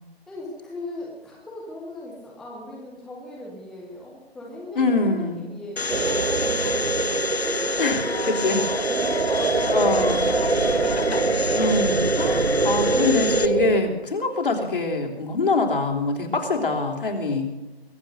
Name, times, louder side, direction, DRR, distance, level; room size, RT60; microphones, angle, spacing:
voice 1, 0.3-11.4, left 1 dB, ahead, -4 dB, 0.7 m, -38 dB
voice 2, 4.8-5.5 7.8-8.6 9.7-10.2 11.5-17.5, left 3 dB, 55° left, 3 dB, 3.5 m, -24 dB
Domestic sounds home sounds, 5.8-13.5, left 4 dB, 75° left, 1.0 m, -29 dB
sound 1, 5.9-13.8, right 3 dB, 70° right, 1.3 m, -24 dB
22.5 x 8.0 x 6.4 m, 1.1 s
figure-of-eight pair, 150°, 31 cm